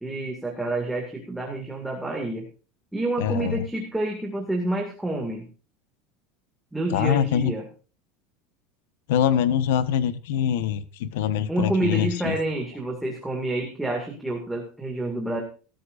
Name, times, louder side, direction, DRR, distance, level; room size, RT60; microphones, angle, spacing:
voice 1, 0.0-2.5 2.9-5.5 6.7-7.7 11.5-15.4, right 1 dB, 5° right, 0 dB, 2.2 m, -28 dB
voice 2, 3.2-3.6 6.9-7.5 9.1-12.4, left 9 dB, 75° left, 14 dB, 1.2 m, -24 dB
18.5 x 13.5 x 2.6 m, 0.36 s
cardioid pair, 180°, 0 cm